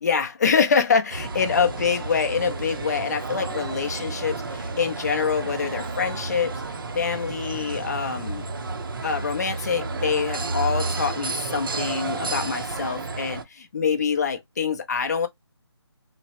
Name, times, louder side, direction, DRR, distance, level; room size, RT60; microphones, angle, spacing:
voice 1, 0.0-6.6 6.9-8.5 9.0-15.3, left 6 dB, 40° left, 0.5 m, -25 dB
sound 1, 1.1-13.4, right 3 dB, 50° right, 0.5 m, -31 dB
2.9 x 2.0 x 2.8 m
figure-of-eight pair, 160°, 14 cm